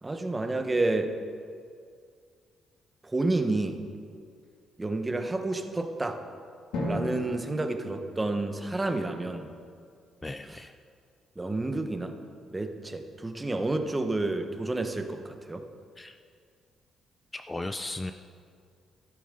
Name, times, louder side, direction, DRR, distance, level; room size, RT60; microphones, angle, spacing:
voice 1, 0.0-1.1 3.0-3.8 4.8-6.2 6.8-9.5 11.4-12.1 12.5-15.6, right 2 dB, 20° right, 6 dB, 1.2 m, -30 dB
Drum, 6.7-9.2, left 1 dB, 85° left, 2.2 m, -36 dB
voice 2, 10.2-10.7 16.0-16.2 17.3-18.1, left 2 dB, 20° left, 8 dB, 0.5 m, -36 dB
13.5 x 12.5 x 3.9 m, 2.2 s
cardioid pair, 85°, 0 cm